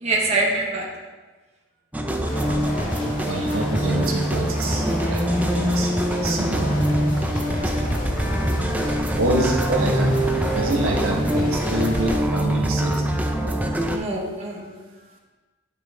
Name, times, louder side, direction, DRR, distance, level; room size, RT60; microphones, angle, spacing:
voice 1, 0.0-0.9 9.7-9.8 13.9-14.8, right 2 dB, 30° right, -2 dB, 1.0 m, -24 dB
sound 1, 1.9-14.0, equal, 5° right, 0.5 m, -23 dB
sound 2, 2.2-12.2, left 1 dB, 40° left, 1.4 m, -34 dB
voice 2, 3.2-5.9 6.2-8.0 9.1-10.2 10.6-13.2, right 1 dB, 75° right, 0 dB, 1.4 m, -28 dB
9.6 x 6.0 x 4.3 m, 1.3 s
head